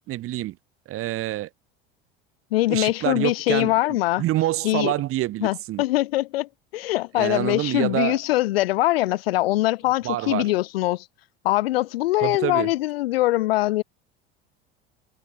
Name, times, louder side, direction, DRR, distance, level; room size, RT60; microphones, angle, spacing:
voice 1, 0.1-0.6 0.9-1.5 2.7-3.8 4.2-5.8 7.2-8.2 10.0-10.5 12.2-12.7, right 15 dB, 50° right, 1.3 m, -26 dB
voice 2, 2.5-4.2 4.6-4.9 5.4-11.0 11.4-13.8, left 17 dB, 80° left, 0.9 m, -23 dB
hypercardioid pair, 85°, 29 cm